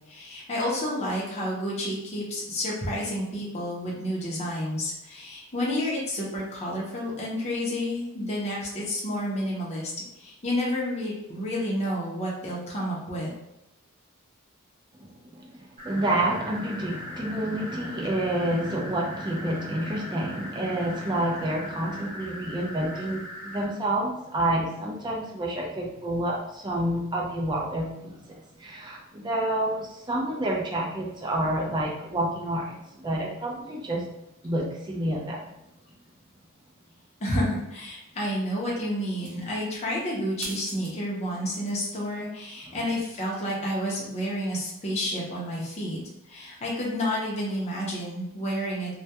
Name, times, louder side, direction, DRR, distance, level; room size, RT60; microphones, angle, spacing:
voice 1, 0.1-9.9 10.2-13.3 37.2-46.0 46.2-48.9, equal, 30° left, -5 dB, 0.6 m, -30 dB
voice 2, 15.0-28.2 28.6-34.1 34.4-35.5, right 1 dB, 20° right, -2 dB, 0.4 m, -29 dB
sound 1, 15.8-23.7, equal, 35° right, 1.0 m, -40 dB
sound 2, 39.1-39.6 40.4-41.0 41.3-41.9 43.0-43.1, right 5 dB, 90° right, 0.5 m, -43 dB
2.2 x 2.1 x 2.8 m, 0.85 s
head